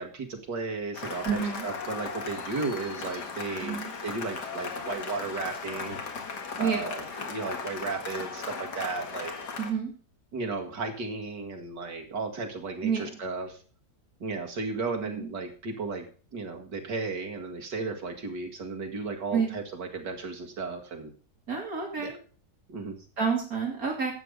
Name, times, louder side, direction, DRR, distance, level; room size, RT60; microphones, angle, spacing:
voice 1, 0.0-6.0 6.6-9.5 10.3-13.6 14.2-16.1 16.3-21.1 22.0-22.2 22.7-23.0, right 4 dB, 85° right, 2 dB, 2.6 m, -34 dB
Cheering / Applause, 0.9-9.7, left 5 dB, 70° left, 2.3 m, -37 dB
voice 2, 1.2-1.6 3.6-3.9 6.6-6.8 9.6-9.9 12.8-13.1 15.1-15.3 19.3-19.5 21.5-22.2 23.2-24.1, right 6 dB, 55° right, 1 dB, 2.9 m, -29 dB
12.5 x 8.1 x 5.2 m, 0.40 s
omnidirectional pair, 1.8 m